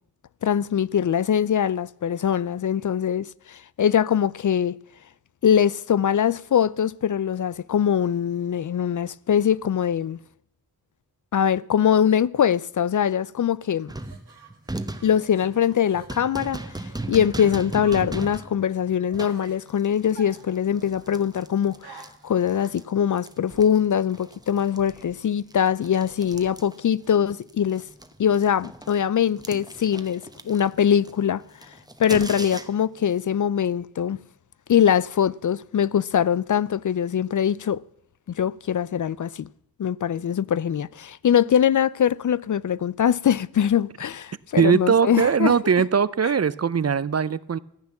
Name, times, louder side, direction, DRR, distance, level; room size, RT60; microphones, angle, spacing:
voice 1, 0.4-4.7 5.4-10.2 11.3-13.9 15.0-16.6 17.1-27.8 28.2-31.4 32.0-34.2 34.7-37.8 38.4-39.5 39.8-45.5 46.2-46.3, left 9 dB, 50° left, 0.4 m, -22 dB
sound 1, 13.8-17.1 17.4-19.6 20.1-21.2 21.8-22.8, right 6 dB, 85° right, 2.0 m, -48 dB
sound 2, 13.9-22.9 23.2-27.2 27.4-33.0, right 1 dB, 10° right, 1.0 m, -38 dB
voice 2, 44.6-47.6, right 6 dB, 40° right, 0.5 m, -20 dB
14.0 x 8.8 x 7.1 m
wide cardioid pair, 85°, 39 cm